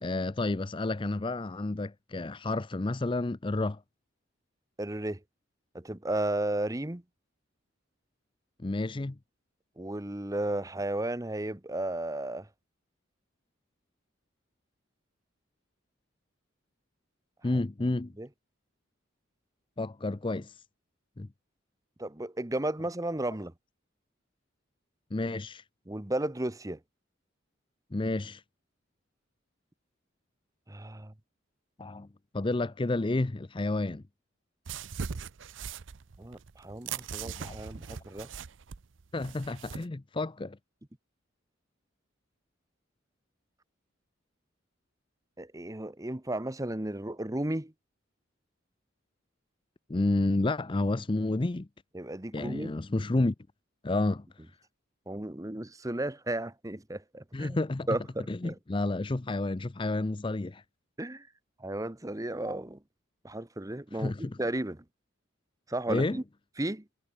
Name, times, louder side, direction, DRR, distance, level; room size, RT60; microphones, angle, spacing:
voice 1, 0.0-3.8 8.6-9.2 17.4-18.1 19.8-20.5 21.2-21.3 25.1-25.6 27.9-28.4 31.8-32.1 32.3-34.0 37.4-37.6 39.1-40.6 49.9-51.7 52.3-53.3 53.8-54.2 57.3-57.9 58.3-60.6 64.0-64.4 65.9-66.2, left 2 dB, 25° left, 0.5 m, -30 dB
voice 2, 4.8-5.2 5.7-7.0 9.8-12.5 18.2-18.3 22.0-23.5 25.9-26.8 30.7-31.1 36.2-38.3 45.4-47.7 51.9-52.8 55.1-57.6 57.9-58.6 61.0-61.3 61.6-62.8 63.2-64.8 65.7-66.2 66.6-66.8, right 1 dB, 15° right, 1.0 m, -34 dB
sound 1, 34.7-39.8, right 6 dB, 70° right, 0.6 m, -40 dB
head